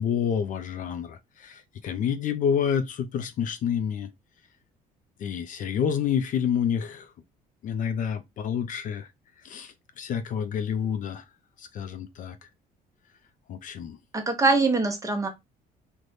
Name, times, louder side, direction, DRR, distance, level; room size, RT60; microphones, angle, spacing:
voice 1, 0.0-4.1 5.2-7.1 7.6-9.1 9.4-11.2 11.6-12.5 13.5-14.0, left 8 dB, 50° left, 0.4 m, -28 dB
voice 2, 14.1-15.3, right 3 dB, 20° right, 0.8 m, -23 dB
2.6 x 2.1 x 3.2 m
cardioid pair, 110°, 17 cm